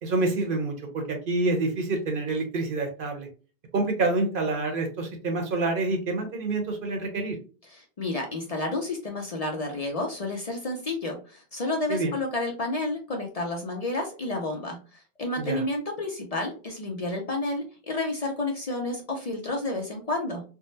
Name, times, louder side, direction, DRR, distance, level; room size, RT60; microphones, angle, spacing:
voice 1, 0.0-3.3 3.7-7.4 11.9-12.1 15.4-15.6, right 2 dB, 60° right, 3 dB, 0.9 m, -27 dB
voice 2, 7.7-20.4, left 2 dB, 45° left, 1 dB, 0.6 m, -30 dB
3.6 x 2.0 x 2.6 m, 0.36 s
omnidirectional pair, 1.0 m